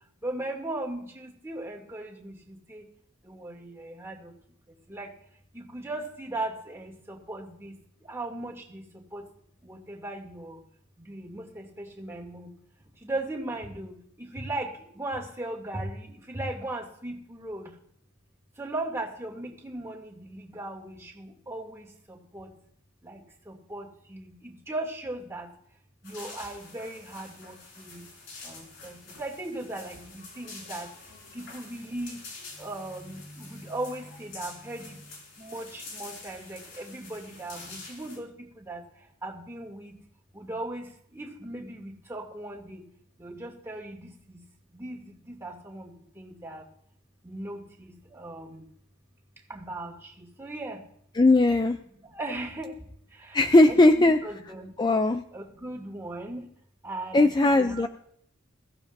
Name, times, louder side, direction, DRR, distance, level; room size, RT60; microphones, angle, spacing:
voice 1, 0.2-2.8 3.2-4.2 4.9-5.1 5.5-7.7 8.1-8.8 9.1-9.2 9.6-10.6 11.1-12.5 13.0-13.9 14.2-17.7 18.6-21.9 22.3-22.5 23.0-23.2 23.5-25.5 26.0-28.0 28.4-30.9 31.3-32.2 32.6-35.0 35.4-38.3 38.6-38.8 39.2-39.9 40.3-40.9 41.1-42.8 43.2-44.4 44.7-45.9 46.2-46.6 47.2-48.6 49.5-49.9 50.4-50.8 52.1-52.7 53.7-54.7 55.3-56.5 56.8-57.9, right 2 dB, 15° right, -2 dB, 2.7 m, -37 dB
sound 1, 26.0-38.2, left 3 dB, 65° left, 4.9 m, -46 dB
voice 2, 51.1-51.8 53.3-54.2 54.8-55.2 57.1-57.9, left 2 dB, 20° left, 8 dB, 0.4 m, -19 dB
21.5 x 15.0 x 2.7 m, 0.67 s
head